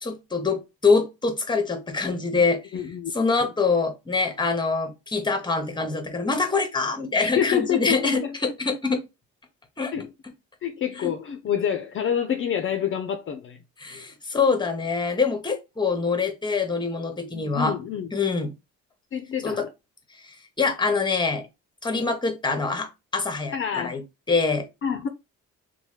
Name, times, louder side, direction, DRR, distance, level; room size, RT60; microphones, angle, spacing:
voice 1, 0.0-2.6 3.1-9.0 9.8-9.9 11.0-11.1 13.8-17.8 18.1-18.5 19.4-19.7 20.2-21.5 21.8-24.0 24.3-24.7, left 4 dB, 15° left, 0.8 m, -25 dB
voice 2, 2.7-3.1 7.2-8.3 9.9-10.1 10.6-13.6 13.8-14.0 17.3-18.1 19.1-19.7 23.5-24.0 24.8-25.1, left 8 dB, 45° left, 0.5 m, -27 dB
3.0 x 2.2 x 3.1 m
cardioid pair, 90°, 30 cm